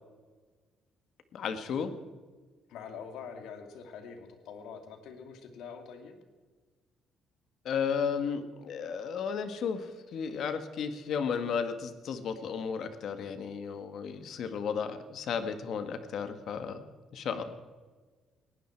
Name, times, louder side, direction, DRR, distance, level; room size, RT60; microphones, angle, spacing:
voice 1, 1.3-1.9 7.6-16.8 17.1-17.4, left 6 dB, 55° left, 10 dB, 1.4 m, -34 dB
voice 2, 2.7-6.2 17.3-17.4, left 6 dB, 85° left, 6 dB, 2.3 m, -45 dB
19.5 x 16.0 x 4.5 m, 1.4 s
cardioid pair, 165°, 0 cm